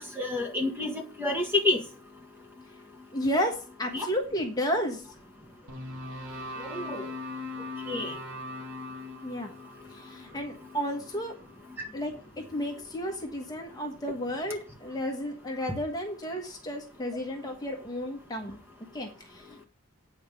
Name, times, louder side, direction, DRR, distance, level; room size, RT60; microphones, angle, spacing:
voice 1, 0.0-1.8 3.9-4.1 6.6-7.1 7.9-8.1, left 2 dB, 10° right, 3 dB, 1.7 m, -29 dB
voice 2, 3.1-5.1 9.2-9.5 9.9-11.4 11.9-18.6 18.9-19.6, equal, 20° left, 2 dB, 1.3 m, -32 dB
sound 1, 5.7-11.9, left 1 dB, 80° right, 2.3 m, -41 dB
8.6 x 5.8 x 6.8 m, 0.38 s
head